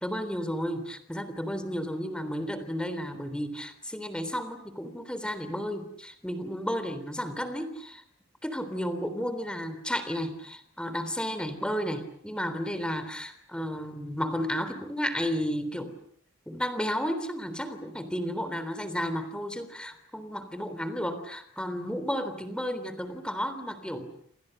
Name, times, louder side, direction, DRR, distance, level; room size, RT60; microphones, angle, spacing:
voice 1, 0.0-8.0 8.4-15.9 16.5-24.1, equal, 5° left, 11 dB, 3.5 m, -33 dB
28.0 x 28.0 x 6.7 m, 0.67 s
head